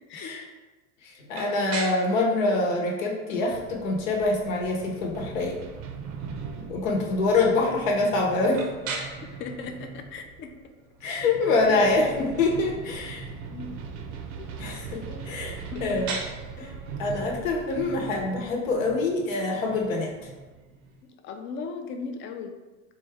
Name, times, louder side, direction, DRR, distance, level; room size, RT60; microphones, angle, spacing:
voice 1, 0.1-0.4 1.0-5.6 6.6-8.7 11.0-13.3 14.6-16.2 16.6-16.7 17.0-20.3, left 3 dB, 90° left, 0 dB, 1.0 m, -25 dB
sound 1, 1.3-21.1, right 4 dB, 85° right, 0.8 m, -43 dB
sound 2, 3.5-21.0, right 5 dB, 45° right, 0.5 m, -41 dB
voice 2, 9.4-10.5 11.0-11.9 13.5-13.7 14.4-14.5 15.7-16.0 21.0-22.5, left 4 dB, 35° left, 5 dB, 0.4 m, -37 dB
4.1 x 2.3 x 3.3 m, 1.2 s
supercardioid pair, 110°, 38 cm